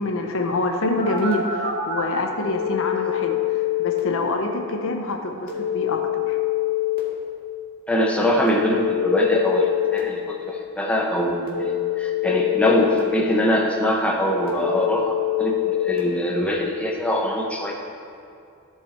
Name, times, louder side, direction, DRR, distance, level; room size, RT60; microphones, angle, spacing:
voice 1, 0.0-6.4, left 2 dB, 65° left, 3 dB, 0.8 m, -26 dB
Telephone, 1.0-2.0 2.5-4.0 5.5-7.0 8.5-10.0 11.5-13.0 14.5-16.0, left 12 dB, 40° right, 1.9 m, -25 dB
voice 2, 7.9-17.7, left 1 dB, 5° left, -1 dB, 0.7 m, -23 dB
14.0 x 4.8 x 4.3 m, 2.5 s
head